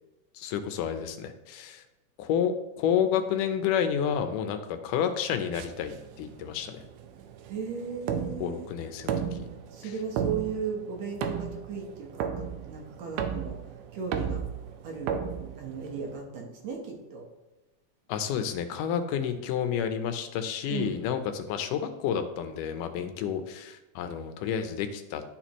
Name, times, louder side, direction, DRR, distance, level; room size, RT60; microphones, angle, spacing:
voice 1, 0.3-1.8 2.2-6.8 8.4-9.1 9.4-9.5 9.8-9.9 18.1-25.2, left 8 dB, 80° left, 8 dB, 2.2 m, -30 dB
sound 1, 5.5-16.2, right 7 dB, 80° right, 2.1 m, -35 dB
voice 2, 7.5-8.7 9.7-13.6 13.9-14.4 14.8-17.3 20.7-20.9, right 6 dB, 65° right, 1 dB, 2.2 m, -36 dB
11.5 x 4.3 x 3.0 m, 1.1 s
omnidirectional pair, 3.7 m